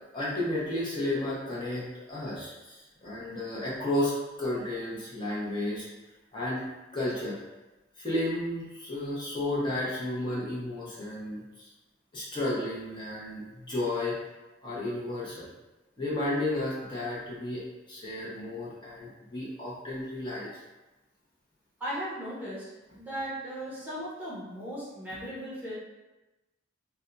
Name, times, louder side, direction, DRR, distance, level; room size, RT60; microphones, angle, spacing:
voice 1, 0.1-5.9 6.3-6.7 6.9-7.4 8.0-11.7 12.1-14.2 14.6-15.5 16.0-20.5, left 1 dB, 25° left, -7 dB, 0.9 m, -32 dB
voice 2, 21.8-22.6 23.0-25.7, equal, 10° right, -9 dB, 0.9 m, -37 dB
2.7 x 2.2 x 3.8 m, 1.1 s
head